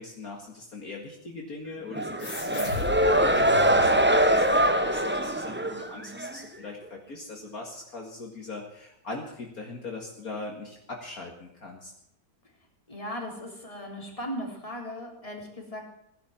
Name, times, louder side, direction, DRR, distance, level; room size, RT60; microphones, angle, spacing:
voice 1, 0.0-11.9, left 3 dB, 55° left, 1 dB, 2.4 m, -40 dB
sound 1, 1.9-6.4, right 1 dB, 10° right, 0.7 m, -23 dB
sound 2, 2.2-5.2, left 3 dB, 90° left, 3.2 m, -38 dB
voice 2, 12.9-15.8, equal, 20° left, 0 dB, 3.6 m, -37 dB
17.0 x 11.0 x 7.2 m, 0.77 s
omnidirectional pair, 1.9 m